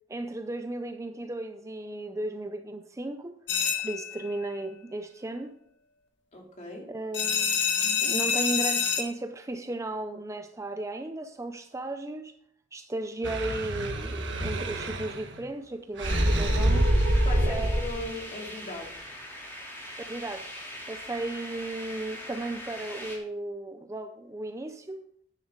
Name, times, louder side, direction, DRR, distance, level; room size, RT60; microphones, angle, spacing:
voice 1, 0.1-3.4 3.8-5.5 6.9-12.3 12.7-16.9 17.5-17.7 20.0-20.5 20.9-25.0, right 2 dB, 15° right, 7 dB, 0.5 m, -35 dB
sound 1, 3.5-4.3 7.1-9.0, left 6 dB, 75° left, 1.7 m, -27 dB
voice 2, 6.3-6.9 17.1-19.1, left 2 dB, 40° left, 0 dB, 2.7 m, -39 dB
sound 2, 13.2-15.4 16.0-18.0, right 1 dB, 70° right, 1.5 m, -26 dB
sound 3, 16.0-23.2, equal, 15° left, 3.1 m, -41 dB
10.5 x 9.8 x 3.8 m, 0.68 s
head